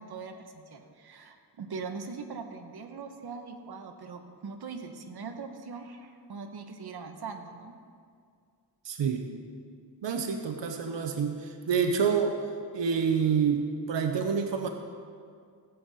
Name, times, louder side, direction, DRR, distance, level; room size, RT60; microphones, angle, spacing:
voice 1, 0.0-7.7, right 5 dB, 60° right, 4 dB, 1.0 m, -41 dB
voice 2, 8.8-9.3 10.0-12.4 12.7-14.7, right 6 dB, 85° right, 4 dB, 0.8 m, -27 dB
16.5 x 8.0 x 4.1 m, 2.2 s
wide cardioid pair, 160°, 42 cm